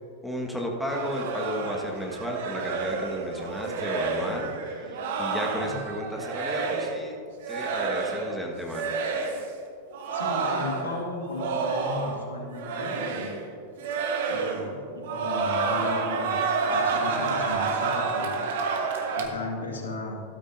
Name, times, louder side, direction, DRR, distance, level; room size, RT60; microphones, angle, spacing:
voice 1, 0.2-4.5 5.2-7.2 7.5-9.0, equal, 5° left, -1 dB, 1.5 m, -33 dB
sound 1, 0.9-7.0 7.4-8.4 8.7-9.5 9.9-12.3 12.5-13.5 13.8-14.7 15.0-19.3, right 4 dB, 55° right, 1.2 m, -29 dB
voice 2, 10.1-13.4 14.3-18.4 19.1-20.2, left 2 dB, 70° left, 0 dB, 2.0 m, -36 dB
13.0 x 12.5 x 2.7 m, 2.5 s
figure-of-eight pair, 90°, 0 cm